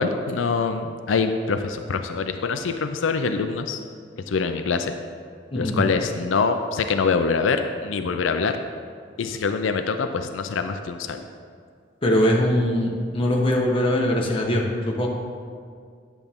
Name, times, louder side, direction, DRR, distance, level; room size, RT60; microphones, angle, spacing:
voice 1, 0.0-3.8 4.3-4.9 5.6-8.5 9.2-11.2, left 4 dB, 90° left, 7 dB, 0.4 m, -24 dB
voice 2, 5.5-5.9 12.0-15.1, left 1 dB, 30° left, -1 dB, 1.1 m, -22 dB
10.0 x 7.0 x 3.6 m, 2.1 s
head